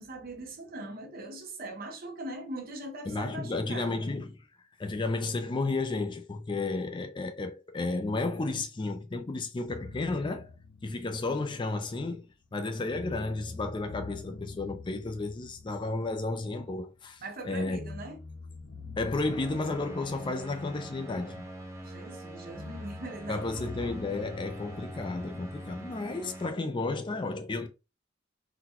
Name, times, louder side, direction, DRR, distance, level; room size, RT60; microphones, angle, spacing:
voice 1, 0.0-3.9 17.2-18.2 21.8-23.5, right 1 dB, 50° right, 0.8 m, -41 dB
voice 2, 3.1-4.5 4.8-10.5 10.8-17.8 19.0-21.5 23.3-27.7, left 3 dB, 25° left, 0.4 m, -32 dB
sound 1, 9.7-12.5 12.9-17.1 17.7-21.8 22.5-26.5, left 3 dB, 90° left, 0.7 m, -46 dB
sound 2, 19.2-26.5, right 1 dB, 15° right, 0.7 m, -44 dB
3.9 x 2.2 x 2.9 m
head